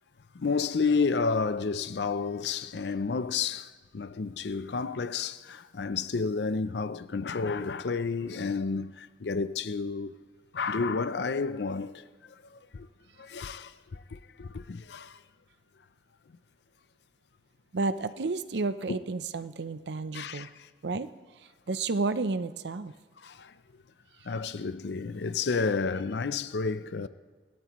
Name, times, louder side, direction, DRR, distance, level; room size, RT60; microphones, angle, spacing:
voice 1, 0.3-10.1 10.5-12.9 13.2-15.2 18.9-19.0 20.1-20.7 23.2-23.5 24.2-27.1, left 4 dB, 75° left, 0.5 m, -31 dB
voice 2, 17.7-20.5 20.8-21.1 21.7-22.9, right 3 dB, 75° right, 0.6 m, -31 dB
27.5 x 13.0 x 3.1 m
head